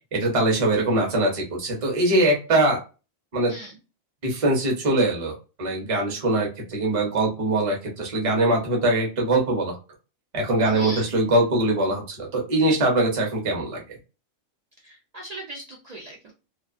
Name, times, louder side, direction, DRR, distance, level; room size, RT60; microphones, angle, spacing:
voice 1, 0.1-2.8 3.3-3.5 4.2-9.8 10.3-13.8, right 2 dB, 35° right, 0 dB, 0.7 m, -22 dB
voice 2, 3.5-3.8 10.7-11.1 14.8-16.3, right 1 dB, 65° right, -2 dB, 0.4 m, -38 dB
2.3 x 2.3 x 2.4 m, 0.31 s
omnidirectional pair, 1.4 m